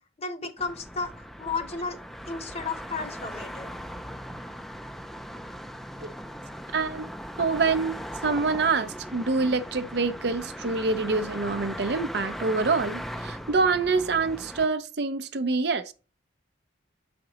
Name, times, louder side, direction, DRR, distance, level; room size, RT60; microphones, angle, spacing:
voice 1, 0.2-2.0 2.3-3.7, left 4 dB, 30° left, 0.9 m, -33 dB
sound 1, 0.6-14.7, equal, ahead, 0.4 m, -39 dB
voice 2, 6.7-7.1 7.4-8.0 8.2-15.9, right 4 dB, 55° right, 0.5 m, -26 dB
7.6 x 5.1 x 2.9 m
head